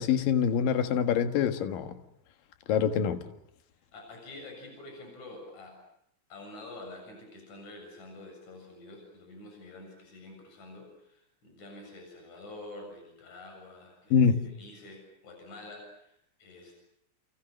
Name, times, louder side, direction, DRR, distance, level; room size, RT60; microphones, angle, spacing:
voice 1, 0.0-1.9 2.7-3.2 14.1-14.4, left 7 dB, 60° left, 3.0 m, -25 dB
voice 2, 3.9-5.8 6.3-16.8, left 2 dB, 40° left, 8.7 m, -47 dB
30.0 x 30.0 x 6.6 m
omnidirectional pair, 4.9 m